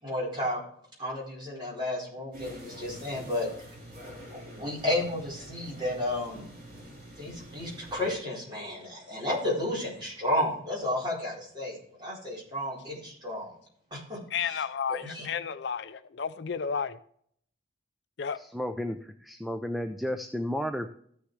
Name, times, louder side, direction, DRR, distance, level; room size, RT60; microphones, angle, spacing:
voice 1, 0.0-0.6 1.0-3.5 4.3-6.5 7.2-13.5 13.9-14.2 14.5-14.6 14.9-15.3, left 1 dB, 25° right, 4.2 m, -32 dB
sound 1, 2.3-8.2, right 1 dB, 45° right, 3.7 m, -47 dB
voice 2, 14.3-17.0 18.2-18.4, left 6 dB, 60° left, 0.4 m, -32 dB
voice 3, 18.3-20.9, equal, ahead, 0.4 m, -33 dB
14.5 x 6.5 x 3.2 m
head